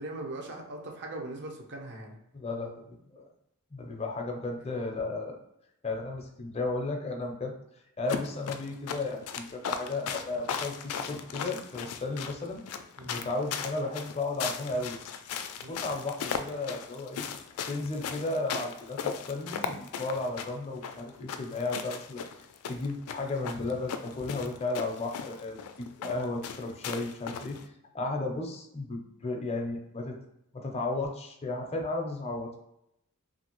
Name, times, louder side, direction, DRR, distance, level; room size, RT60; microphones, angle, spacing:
voice 1, 0.0-2.2 13.0-13.1 15.6-15.8, right 2 dB, 50° right, 0 dB, 0.7 m, -40 dB
voice 2, 2.3-3.2 3.7-5.4 5.8-7.5 8.0-12.6 13.0-15.0 15.7-17.2 17.7-22.2 22.7-27.6 27.9-30.2 30.5-32.6, left 2 dB, 30° left, 2 dB, 0.5 m, -34 dB
sound 1, 8.1-27.6, left 7 dB, 85° left, 0.3 m, -37 dB
2.8 x 2.6 x 3.0 m, 0.82 s
head